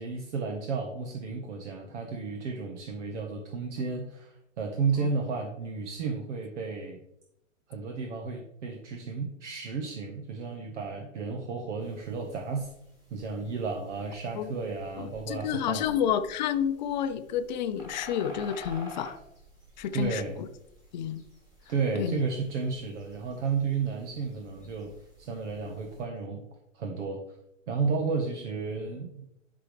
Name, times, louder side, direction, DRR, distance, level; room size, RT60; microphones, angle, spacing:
voice 1, 0.0-7.0 7.7-12.7 13.1-15.8 19.9-20.5 21.7-24.9 25.2-26.4 26.7-27.2 27.7-29.3, right 4 dB, 65° right, 3 dB, 1.5 m, -32 dB
sound 1, 11.8-26.0, left 1 dB, 10° right, 3.2 m, -51 dB
voice 2, 15.0-19.2 19.8-20.2 20.9-21.2 22.0-22.2, left 9 dB, 35° left, 10 dB, 0.7 m, -30 dB
11.5 x 6.1 x 3.4 m, 0.81 s
hypercardioid pair, 150°, 39 cm